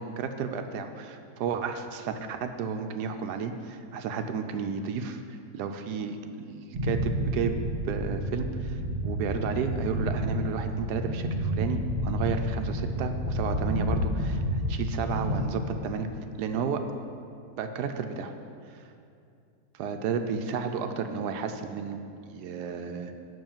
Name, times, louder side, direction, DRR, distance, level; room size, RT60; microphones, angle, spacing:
voice 1, 0.0-5.2 5.5-7.5 7.9-16.1 16.4-16.8 17.6-18.3 18.7-18.8 19.7-22.0 22.3-23.1, right 6 dB, 80° right, 7 dB, 1.2 m, -32 dB
sound 1, 6.7-15.4, equal, 40° right, 1.6 m, -30 dB
7.8 x 5.9 x 7.2 m, 2.5 s
omnidirectional pair, 1.7 m